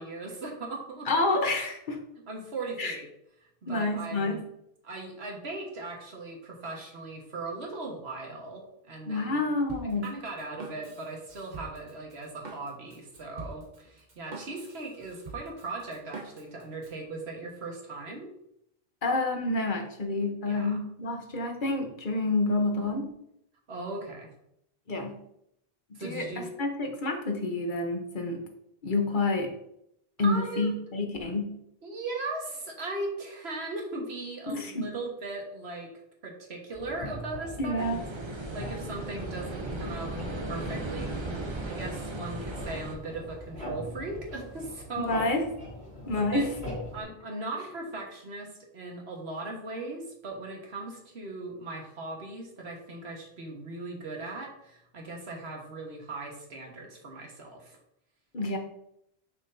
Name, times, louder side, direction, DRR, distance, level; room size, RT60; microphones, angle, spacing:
voice 1, 0.0-1.1 2.3-3.0 3.6-4.4 4.8-8.6 8.9-9.5 10.0-18.3 20.5-20.8 23.7-24.3 25.9-26.5 30.2-30.7 31.8-35.9 36.2-37.9 38.5-40.1 40.5-45.3 46.1-46.4 46.9-57.8, right 2 dB, 90° right, 1 dB, 1.6 m, -38 dB
voice 2, 1.1-2.0 2.8-2.9 3.7-4.4 9.1-10.1 19.0-23.1 24.9-25.2 25.9-28.4 28.8-29.5 30.2-31.5 34.5-34.9 37.6-38.0 45.1-45.4 46.1-46.5 58.3-58.6, left 2 dB, 55° left, 3 dB, 1.1 m, -28 dB
Drum kit, 9.7-17.0, right 3 dB, 45° right, 1.2 m, -46 dB
sound 1, 36.7-47.0, left 1 dB, 75° left, 3.0 m, -41 dB
sound 2, 37.8-43.0, right 2 dB, 30° right, 0.7 m, -36 dB
6.2 x 6.0 x 2.7 m, 0.77 s
omnidirectional pair, 1.0 m